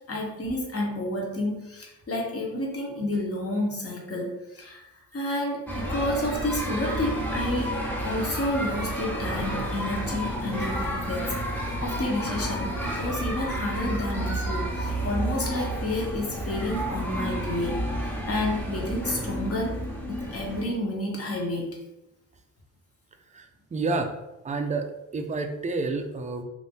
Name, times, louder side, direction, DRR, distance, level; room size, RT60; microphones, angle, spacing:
voice 1, 0.1-4.8 5.1-17.8 18.0-19.8 20.1-21.8, left 1 dB, 35° left, -2 dB, 1.2 m, -30 dB
sound 1, 5.7-20.6, equal, 5° left, 0.9 m, -31 dB
voice 2, 23.3-24.1 24.4-24.9 25.1-26.4, right 3 dB, 20° right, 6 dB, 0.4 m, -29 dB
2.6 x 2.5 x 3.6 m, 0.93 s
supercardioid pair, 55°, 41 cm